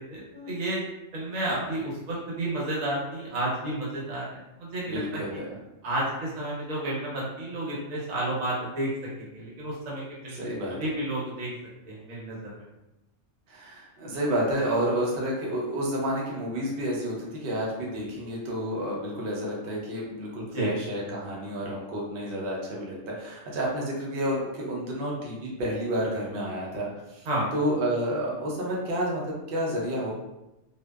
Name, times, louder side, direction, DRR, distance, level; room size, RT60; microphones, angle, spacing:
voice 1, 0.1-0.8 1.1-5.2 5.8-8.9 9.2-10.5 10.8-11.5 11.9-12.6 20.5-20.7 27.2-27.5, right 1 dB, 85° right, -5 dB, 1.3 m, -31 dB
voice 2, 4.8-5.6 10.3-10.9 13.5-30.1, equal, 55° right, -3 dB, 0.7 m, -30 dB
2.6 x 2.1 x 2.2 m, 0.96 s
omnidirectional pair, 1.3 m